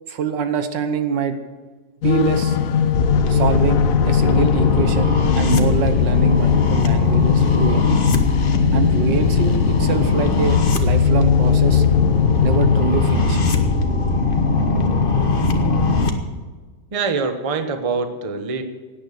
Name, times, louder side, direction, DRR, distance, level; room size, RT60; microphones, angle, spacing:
voice 1, 0.1-1.4 2.0-2.6 3.3-7.9 8.7-11.9 12.4-13.4, right 7 dB, 75° right, 9 dB, 1.7 m, -24 dB
sound 1, 2.0-15.3, left 7 dB, 60° left, 1.0 m, -21 dB
sound 2, 2.9-16.1, left 4 dB, 35° left, 1.1 m, -20 dB
voice 2, 16.9-18.6, right 4 dB, 25° right, 7 dB, 0.8 m, -24 dB
17.5 x 9.4 x 6.6 m, 1.4 s
omnidirectional pair, 2.0 m